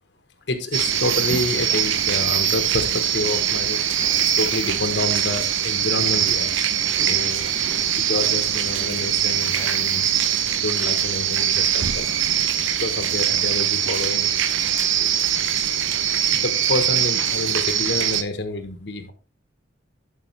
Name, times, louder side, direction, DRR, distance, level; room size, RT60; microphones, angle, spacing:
voice 1, 0.5-3.9 4.2-6.5 7.0-7.5 7.9-10.1 10.5-12.1 12.7-14.3 15.0-15.3 16.3-19.1, left 2 dB, 60° left, 8 dB, 1.2 m, -28 dB
sound 1, 0.7-18.2, right 9 dB, 75° right, 0.7 m, -22 dB
11.5 x 5.2 x 3.3 m, 0.34 s
head